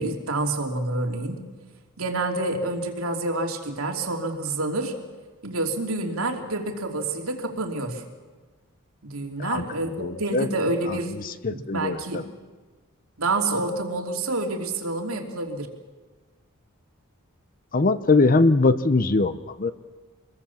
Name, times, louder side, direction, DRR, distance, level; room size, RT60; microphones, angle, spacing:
voice 1, 0.0-1.4 2.0-5.0 5.4-8.0 9.0-11.1 11.5-12.3 13.2-15.7, right 2 dB, 80° right, 3 dB, 3.0 m, -28 dB
voice 2, 10.0-10.5 11.2-12.2 17.7-19.7, left 3 dB, 40° left, 12 dB, 0.8 m, -22 dB
27.5 x 21.5 x 7.2 m, 1.4 s
head